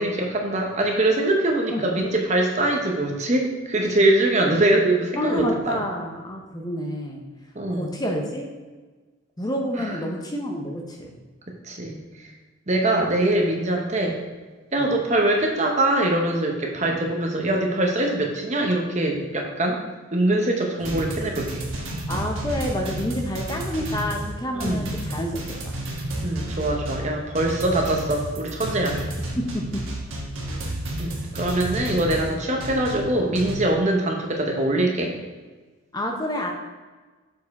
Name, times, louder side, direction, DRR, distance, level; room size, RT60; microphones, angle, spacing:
voice 1, 0.0-5.8 7.5-7.9 9.8-9.9 11.6-12.0 12.7-14.2 14.7-19.8 20.1-21.6 24.5-24.8 26.2-29.0 31.0-35.1, right 1 dB, 35° right, 1 dB, 0.9 m, -23 dB
voice 2, 5.2-7.2 7.7-8.5 9.4-11.2 14.8-14.9 16.8-17.0 22.1-25.7 29.4-29.8 35.9-36.5, equal, 20° left, 1 dB, 0.6 m, -28 dB
sound 1, 20.8-33.5, right 1 dB, 75° right, 1.4 m, -31 dB
6.6 x 4.7 x 4.1 m, 1.3 s
head